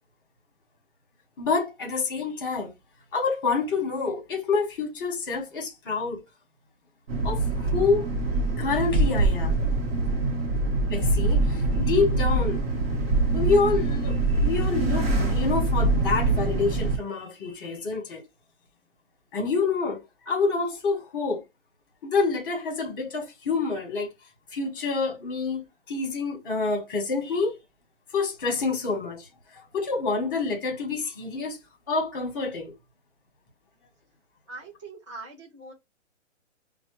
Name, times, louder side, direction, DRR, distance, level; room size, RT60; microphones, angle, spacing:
voice 1, 1.4-2.7 3.1-6.2 7.2-8.1 8.6-9.6 10.9-12.6 13.3-18.2 19.3-21.4 22.0-24.1 24.5-27.6 28.1-31.6 31.9-32.7, left 4 dB, 20° left, 0.9 m, -27 dB
sound 1, 7.1-17.0, right 2 dB, 55° right, 1.0 m, -24 dB
voice 2, 34.5-35.7, right 3 dB, 25° right, 0.6 m, -42 dB
5.3 x 2.1 x 3.0 m
hypercardioid pair, 170°, 37 cm